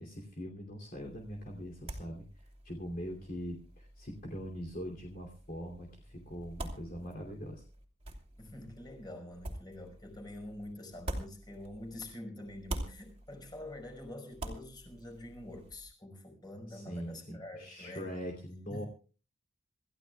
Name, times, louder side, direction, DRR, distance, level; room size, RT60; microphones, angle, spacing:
voice 1, 0.0-7.6 16.7-18.8, equal, 45° left, 0 dB, 2.8 m, -42 dB
sound 1, 1.0-12.1 12.4-15.9, right 1 dB, 30° right, 2.8 m, -46 dB
voice 2, 8.4-18.1 18.7-18.9, left 1 dB, 20° left, 3 dB, 5.3 m, -46 dB
27.5 x 15.0 x 2.3 m, 0.36 s
head